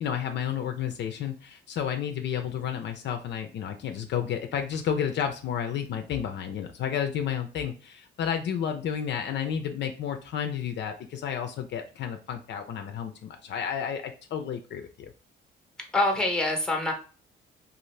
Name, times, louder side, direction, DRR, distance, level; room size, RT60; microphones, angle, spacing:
voice 1, 0.0-15.1, left 8 dB, 60° left, 6 dB, 0.5 m, -31 dB
voice 2, 15.8-16.9, left 2 dB, 5° left, 3 dB, 0.8 m, -25 dB
2.6 x 2.5 x 3.1 m, 0.36 s
cardioid pair, 90°, 20 cm